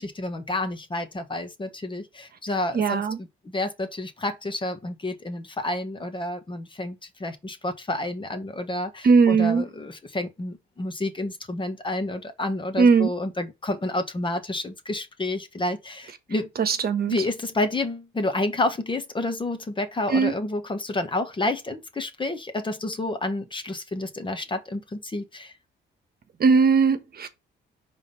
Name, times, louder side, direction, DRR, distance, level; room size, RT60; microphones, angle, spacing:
voice 1, 0.0-3.3 3.5-6.9 7.2-16.5 17.1-25.5, left 2 dB, 25° left, 1.4 m, -29 dB
voice 2, 2.7-3.2 9.0-9.6 12.8-13.1 16.6-17.2 20.1-20.3 26.4-27.3, right 5 dB, 50° right, 1.2 m, -19 dB
5.0 x 3.6 x 5.5 m
cardioid pair, 90°, 20 cm